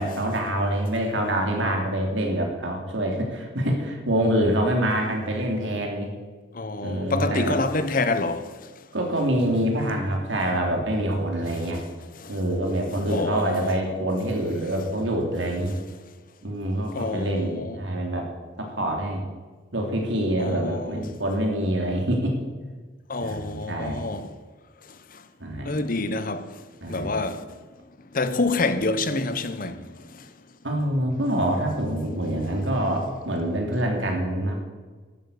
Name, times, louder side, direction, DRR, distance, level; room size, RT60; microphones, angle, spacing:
voice 1, 0.0-6.1 6.8-7.6 8.9-11.8 12.3-15.8 16.4-18.3 18.6-19.2 19.7-22.4 23.2-24.1 25.4-25.8 26.8-27.3 30.6-34.6, right 1 dB, 65° right, 2.9 m, -26 dB
voice 2, 6.5-8.7 11.5-11.8 12.2-12.4 13.1-13.7 16.9-17.8 20.4-21.1 23.1-24.3 25.1-25.2 25.6-26.6 26.9-27.4 28.1-30.3, left 3 dB, 45° left, 0.8 m, -27 dB
12.0 x 8.9 x 8.3 m
head